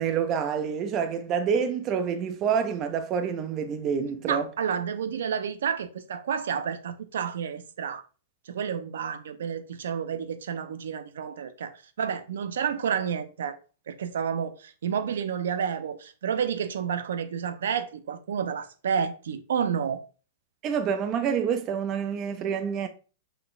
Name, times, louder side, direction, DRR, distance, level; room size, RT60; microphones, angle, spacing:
voice 1, 0.0-4.5 20.6-22.9, right 7 dB, 20° right, 0.3 m, -27 dB
voice 2, 4.2-8.0 8.5-13.6 13.9-20.1, right 7 dB, 85° right, 0.6 m, -30 dB
5.6 x 3.8 x 2.5 m
supercardioid pair, 175°, 0 cm